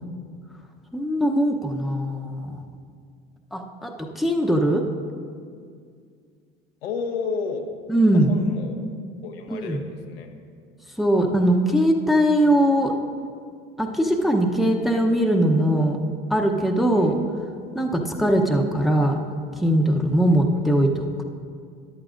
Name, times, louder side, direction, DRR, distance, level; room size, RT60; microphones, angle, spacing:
voice 1, 0.9-2.6 3.5-4.8 7.9-8.3 9.5-9.8 11.0-12.9 13.8-16.0 16.3-17.2 17.7-19.2 19.6-21.2, right 1 dB, ahead, 1 dB, 0.9 m, -21 dB
voice 2, 6.8-7.7 8.1-8.8 9.2-10.3 17.0-17.2 20.3-20.4, left 5 dB, 85° left, 3 dB, 1.0 m, -32 dB
14.0 x 10.5 x 2.6 m, 2.2 s
hypercardioid pair, 80°, 30 cm